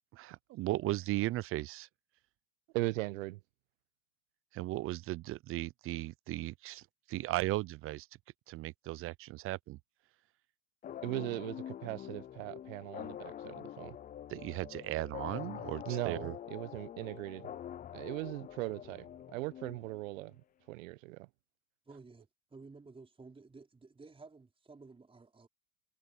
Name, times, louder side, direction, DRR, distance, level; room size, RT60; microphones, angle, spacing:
voice 1, 0.2-1.9 4.5-6.8 7.1-8.1 8.5-9.8 14.3-16.3, right 17 dB, 30° right, 0.6 m, -36 dB
voice 2, 2.7-3.4 10.9-14.0 15.9-17.5 17.9-19.0 19.3-20.3 20.7-21.3, right 21 dB, 65° right, 1.2 m, -39 dB
sound 1, 10.8-20.3, left 10 dB, 20° left, 0.6 m, -45 dB
voice 3, 21.9-25.5, right 4 dB, 10° right, 4.7 m, -54 dB
hypercardioid pair, 110°, 43 cm